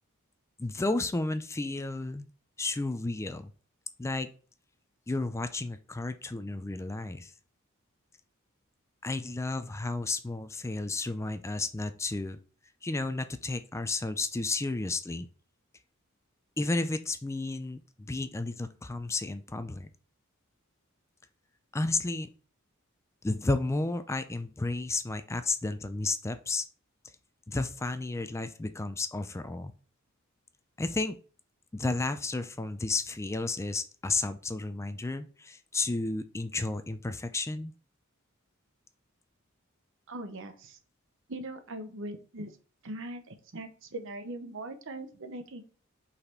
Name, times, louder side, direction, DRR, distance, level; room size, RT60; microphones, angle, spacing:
voice 1, 0.6-2.3 2.6-3.5 4.0-4.3 5.1-7.3 9.0-12.4 12.8-15.3 16.6-19.9 21.7-22.3 23.2-26.7 27.5-29.7 30.8-31.2 31.7-37.7, left 3 dB, 15° left, 10 dB, 0.4 m, -32 dB
voice 2, 40.1-40.8 41.3-42.5 42.8-45.6, right 1 dB, 65° right, 8 dB, 0.9 m, -40 dB
5.5 x 4.1 x 4.3 m, 0.40 s
head